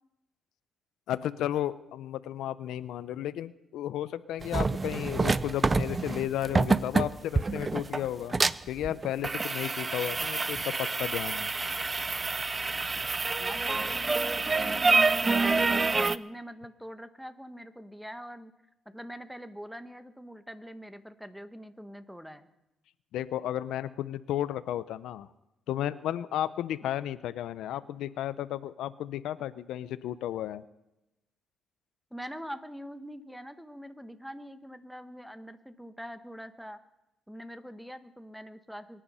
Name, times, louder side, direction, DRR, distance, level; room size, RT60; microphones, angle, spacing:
voice 1, 1.1-8.3 8.7-11.5 12.9-13.0 23.1-25.3 25.7-30.6, left 12 dB, 85° left, 15 dB, 0.6 m, -33 dB
sound 1, 4.4-16.2, right 3 dB, 25° right, 0.5 m, -27 dB
voice 2, 13.4-18.5 18.8-22.5 32.1-36.8 37.3-39.0, equal, ahead, 10 dB, 1.2 m, -44 dB
23.5 x 10.0 x 5.6 m, 0.91 s
cardioid pair, 90°, 0 cm